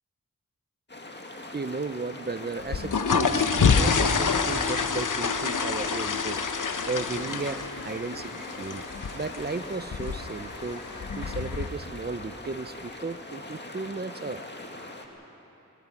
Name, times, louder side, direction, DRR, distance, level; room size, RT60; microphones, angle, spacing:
sound 1, 0.9-15.1, left 2 dB, 35° left, 2.1 m, -42 dB
voice 1, 1.5-6.5 6.9-8.8 9.1-14.4, right 3 dB, 30° right, 12 dB, 0.8 m, -35 dB
sound 2, 2.6-11.7, left 5 dB, 75° left, 1.0 m, -27 dB
22.0 x 13.0 x 9.9 m, 3.0 s
wide cardioid pair, 55°, 31 cm